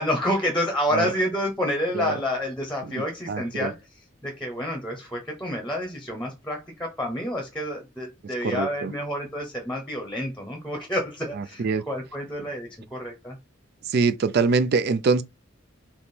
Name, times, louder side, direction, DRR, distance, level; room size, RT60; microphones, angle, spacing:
voice 1, 0.0-3.8 4.2-13.4, left 1 dB, 5° left, 0.9 m, -29 dB
voice 2, 2.9-3.7 8.4-8.9 11.4-11.8 13.9-15.2, right 4 dB, 50° right, 0.4 m, -24 dB
3.6 x 2.9 x 4.2 m
head